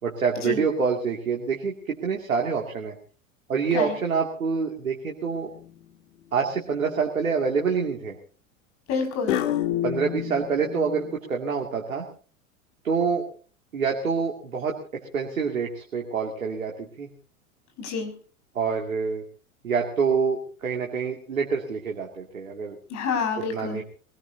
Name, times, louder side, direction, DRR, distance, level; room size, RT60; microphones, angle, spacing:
voice 1, 0.0-2.9 3.5-5.5 6.3-8.2 9.8-12.0 12.8-13.2 13.7-17.1 18.5-19.2 19.6-22.8 23.5-23.8, right 5 dB, 80° right, 0 dB, 2.6 m, -26 dB
sound 1, 5.4-5.9 6.5-7.0 9.3-11.2, left 12 dB, 65° left, 1.6 m, -30 dB
voice 2, 8.9-9.3 17.8-18.1 22.9-23.8, left 5 dB, 40° left, 4 dB, 6.2 m, -28 dB
23.5 x 19.0 x 2.8 m, 0.39 s
figure-of-eight pair, 85°, 41 cm